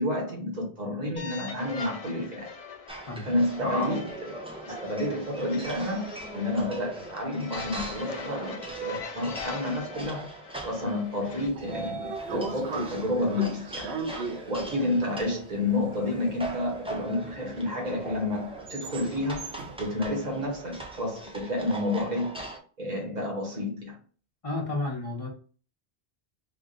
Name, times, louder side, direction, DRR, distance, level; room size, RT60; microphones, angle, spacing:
voice 1, 0.0-2.5 3.3-4.4 4.8-10.3 10.6-13.9 14.5-19.4 19.8-22.4 22.8-24.0, left 1 dB, 40° right, 1.3 m, -30 dB
sound 1, 1.2-11.5, left 3 dB, 50° left, 0.4 m, -42 dB
sound 2, 2.9-22.6, right 2 dB, 5° right, 0.5 m, -41 dB
Train / Sliding door, 11.1-21.3, right 4 dB, 80° right, 0.9 m, -39 dB
voice 2, 24.4-25.3, left 2 dB, 30° left, 1.1 m, -31 dB
3.3 x 2.5 x 3.9 m
omnidirectional pair, 1.1 m